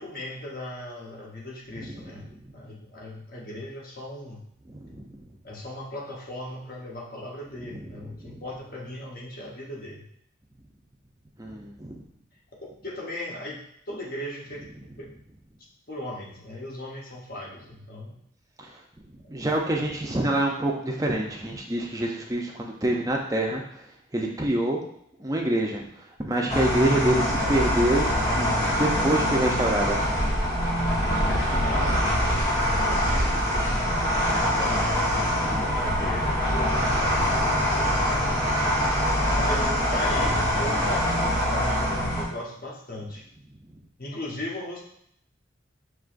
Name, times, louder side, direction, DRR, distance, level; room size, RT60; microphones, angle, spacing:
voice 1, 0.0-4.4 5.4-10.1 12.8-14.7 15.0-15.1 15.9-18.2 31.6-31.9 32.9-33.7 34.5-35.1 35.6-38.5 39.3-43.2 44.0-44.8, left 1 dB, 45° left, -3 dB, 0.9 m, -38 dB
voice 2, 4.7-5.0 8.2-8.4 11.4-12.0 19.3-23.6 24.1-24.8 25.2-25.9 26.2-28.5 28.8-30.0 35.4-35.7, right 1 dB, 15° right, 0 dB, 0.5 m, -26 dB
sound 1, 26.5-42.2, equal, 20° left, 0.9 m, -24 dB
6.0 x 3.0 x 2.5 m, 0.72 s
head